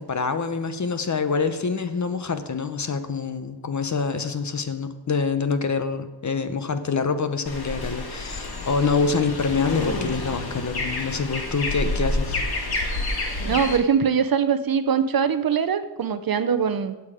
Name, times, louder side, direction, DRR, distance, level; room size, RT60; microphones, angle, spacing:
voice 1, 0.0-12.4, left 5 dB, 40° left, 10 dB, 0.8 m, -26 dB
sound 1, 7.5-13.8, left 2 dB, 55° left, 1.9 m, -29 dB
voice 2, 13.4-16.9, right 7 dB, 50° right, 11 dB, 0.7 m, -22 dB
16.0 x 7.0 x 4.9 m, 1.2 s
wide cardioid pair, 145°, 44 cm